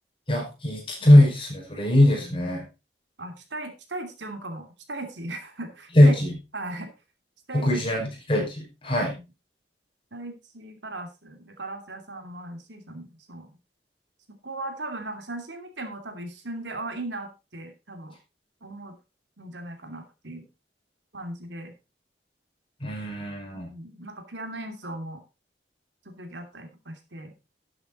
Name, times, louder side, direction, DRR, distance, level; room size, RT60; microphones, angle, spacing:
voice 1, 0.3-2.6 6.0-6.4 7.5-9.1 22.8-23.7, left 1 dB, 30° left, 0 dB, 5.2 m, -20 dB
voice 2, 3.2-6.2 6.5-6.9 7.5-7.7 8.0-8.1 9.0-9.2 10.1-13.6 14.3-18.2 18.6-19.0 19.4-20.5 21.1-21.7 23.5-25.2 26.0-27.3, right 2 dB, 85° right, 5 dB, 2.8 m, -38 dB
12.0 x 7.9 x 4.1 m, 0.28 s
head